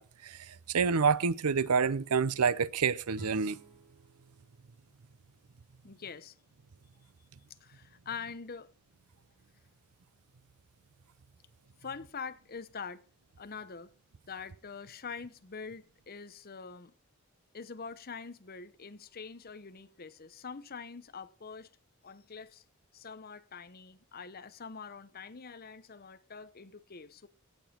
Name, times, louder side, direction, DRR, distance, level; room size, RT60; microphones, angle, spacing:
voice 1, 0.0-3.6, right 5 dB, 90° right, 0.6 m, -28 dB
sound 1, 3.1-6.2, right 1 dB, 15° left, 5.3 m, -54 dB
voice 2, 5.8-6.3 7.6-8.7 11.8-13.0 13.4-13.9 14.3-16.9 17.5-21.7 22.0-22.6 22.9-27.3, left 5 dB, 45° left, 0.8 m, -44 dB
17.0 x 7.1 x 4.4 m
head